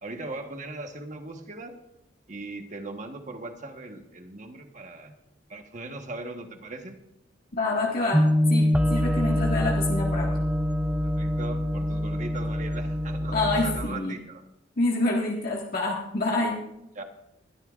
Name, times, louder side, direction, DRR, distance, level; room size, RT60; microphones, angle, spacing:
voice 1, 0.0-1.7 2.3-5.1 5.5-7.0 11.0-14.4 16.9-17.0, right 2 dB, 40° right, 5 dB, 1.3 m, -39 dB
voice 2, 7.5-8.2 8.5-10.4 13.3-14.1 14.8-16.6, left 2 dB, 50° left, -3 dB, 1.7 m, -27 dB
sound 1, 8.1-13.8, left 1 dB, 5° right, 0.5 m, -25 dB
20.5 x 13.5 x 2.5 m, 0.87 s
head